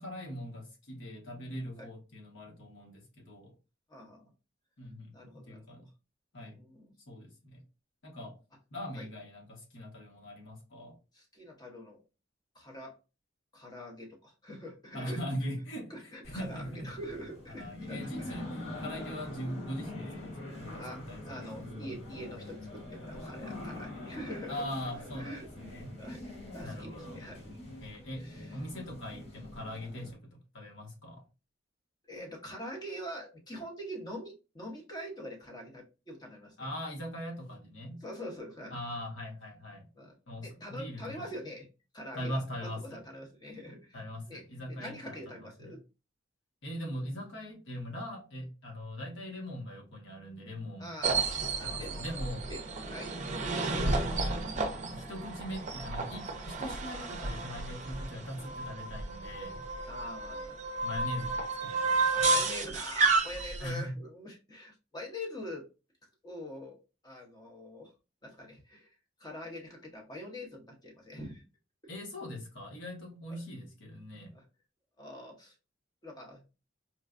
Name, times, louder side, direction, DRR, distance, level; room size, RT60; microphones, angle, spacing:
voice 1, 0.0-3.5 4.8-5.9 6.3-6.6 7.1-7.6 8.0-8.3 8.7-11.0 14.9-16.9 17.5-22.0 24.5-26.0 26.6-27.2 27.8-31.2 36.6-38.0 38.7-39.9 40.3-41.3 42.1-43.0 43.9-45.7 46.6-51.0 51.6-52.5 53.7-54.6 54.8-59.6 60.8-62.4 63.6-64.0 71.9-74.3, equal, 70° left, 1.2 m, -41 dB
voice 2, 3.9-4.3 5.1-5.9 6.5-6.9 8.9-9.0 11.1-12.0 12.5-13.0 13.5-15.2 15.9-18.4 20.8-24.6 25.1-25.5 26.0-27.6 28.2-28.6 32.0-36.7 38.0-38.8 40.0-40.1 40.4-41.7 41.9-44.0 44.3-45.8 50.8-51.2 51.6-52.0 52.5-53.2 59.9-60.6 62.1-65.6 66.2-66.8 67.0-67.9 68.2-68.9 69.2-71.4 73.3-73.4 74.3-74.4 75.0-75.5 76.0-76.4, equal, 20° left, 0.9 m, -44 dB
sound 1, 16.2-30.1, left 1 dB, 55° left, 2.0 m, -44 dB
sound 2, 51.0-63.7, right 3 dB, 40° right, 0.6 m, -32 dB
4.4 x 2.2 x 2.4 m
head